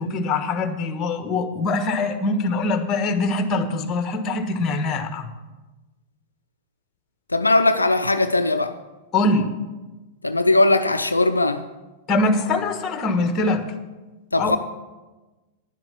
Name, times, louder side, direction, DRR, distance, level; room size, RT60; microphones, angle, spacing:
voice 1, 0.0-5.3 9.1-9.5 12.1-13.7 14.4-14.6, left 2 dB, 30° left, 1.4 m, -23 dB
voice 2, 7.3-8.7 10.2-11.6 14.3-14.6, left 2 dB, 85° left, 0.5 m, -19 dB
10.5 x 7.8 x 7.5 m
figure-of-eight pair, 95°, 0 cm